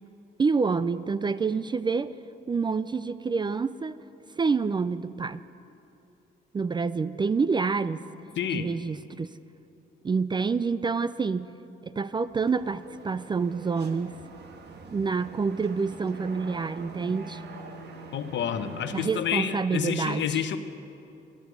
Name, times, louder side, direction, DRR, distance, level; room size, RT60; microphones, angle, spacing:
voice 1, 0.4-2.1 2.5-4.0 4.3-5.4 6.5-8.1 8.5-9.3 10.0-11.5 11.9-14.2 14.9-17.4 18.9-20.4, right 5 dB, 25° right, 15 dB, 0.3 m, -27 dB
voice 2, 8.4-8.7 18.1-20.6, left 8 dB, 65° left, 10 dB, 0.9 m, -29 dB
sound 1, 12.3-19.0, right 3 dB, 60° right, 1.4 m, -44 dB
13.0 x 11.5 x 8.0 m, 2.8 s
cardioid pair, 90°, 20 cm